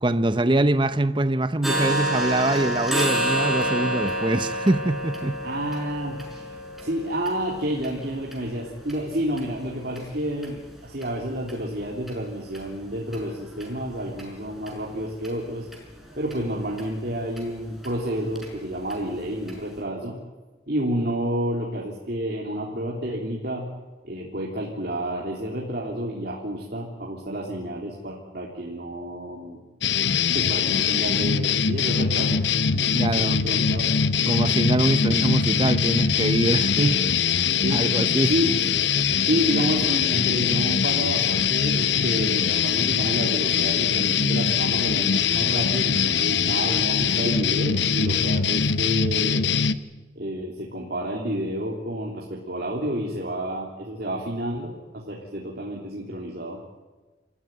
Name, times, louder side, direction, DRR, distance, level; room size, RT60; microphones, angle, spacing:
voice 1, 0.0-5.4 32.9-33.4 34.3-36.9 37.7-38.3, right 1 dB, 25° right, 0.8 m, -23 dB
sound 1, 1.6-9.4 9.9-10.0 10.4-10.6 11.0-11.1 11.5-11.6 12.1-12.2 12.5-12.6 13.1-13.2 13.6-13.7 14.2-14.3 14.7-14.8 15.2-15.3 15.7-15.8 16.3-16.4 16.8-16.9 17.4-17.5 17.8-17.9 18.3-18.5 18.9-19.0 19.5-19.6, right 1 dB, ahead, 5.6 m, -28 dB
voice 2, 5.4-6.6 6.8-15.7 16.2-20.2 20.7-23.7 24.0-29.6 30.3-32.4 32.7-33.9 36.8-37.0 37.6-38.5 39.2-49.5 50.2-56.6, equal, 55° right, 3.5 m, -30 dB
sound 2, 29.8-49.7, left 7 dB, 65° left, 0.9 m, -22 dB
27.5 x 15.5 x 9.3 m
head